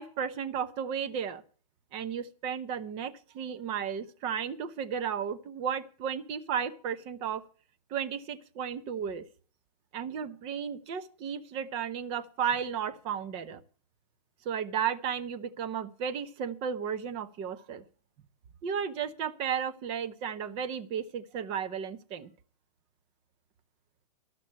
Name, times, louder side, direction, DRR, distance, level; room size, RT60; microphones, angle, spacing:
voice 1, 0.0-1.4 1.9-7.4 7.9-9.2 9.9-13.6 14.4-17.8 18.6-22.3, right 7 dB, 25° right, 11 dB, 0.8 m, -34 dB
13.5 x 6.1 x 8.5 m, 0.42 s
hypercardioid pair, 155°, 21 cm